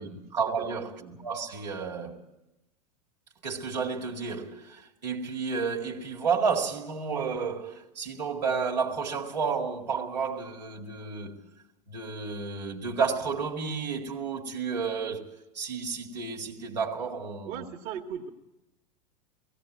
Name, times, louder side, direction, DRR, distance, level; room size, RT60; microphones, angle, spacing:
voice 1, 0.0-2.2 3.4-11.4 11.9-15.3 15.5-17.7, right 5 dB, 80° right, 2.3 m, -31 dB
voice 2, 17.5-18.3, right 8 dB, 45° right, 1.8 m, -38 dB
17.0 x 16.5 x 9.2 m
figure-of-eight pair, 90°, 21 cm